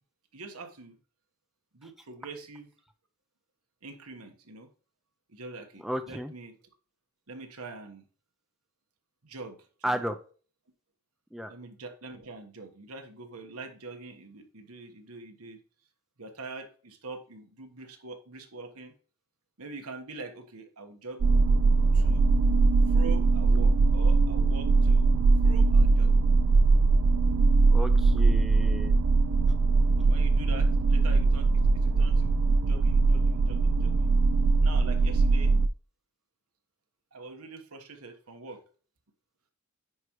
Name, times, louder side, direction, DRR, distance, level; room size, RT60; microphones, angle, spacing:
voice 1, 0.3-1.0 1.7-2.7 3.8-4.7 5.3-6.5 7.3-8.0 9.2-10.0 11.5-15.6 16.2-18.9 19.6-21.2 21.9-22.2 22.9-25.1 25.4-26.1 30.0-32.3 32.6-34.1 34.6-35.5 37.1-38.6, right 3 dB, 85° right, 5 dB, 1.3 m, -44 dB
voice 2, 5.8-6.3 9.8-10.2 11.3-11.5 27.7-29.0, equal, ahead, 7 dB, 0.5 m, -33 dB
sound 1, 21.2-35.7, right 3 dB, 60° right, 0.4 m, -21 dB
9.4 x 4.8 x 3.1 m, 0.39 s
head